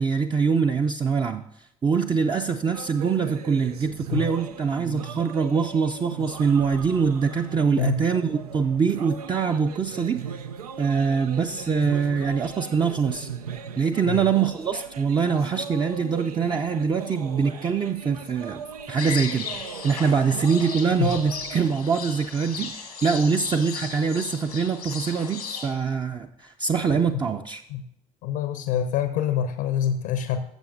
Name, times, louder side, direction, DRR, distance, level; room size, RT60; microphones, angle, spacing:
voice 1, 0.0-1.4 1.8-10.2 10.8-13.3 13.8-18.6 18.9-22.7 23.0-27.6, right 5 dB, 25° right, 4 dB, 0.5 m, -24 dB
sound 1, 2.7-21.7, right 7 dB, 85° right, 0.4 m, -39 dB
sound 2, 19.0-25.7, left 6 dB, 90° left, 1.5 m, -36 dB
voice 2, 28.2-30.4, left 8 dB, 65° left, 10 dB, 0.7 m, -26 dB
14.5 x 7.1 x 2.6 m, 0.75 s
figure-of-eight pair, 60°, 19 cm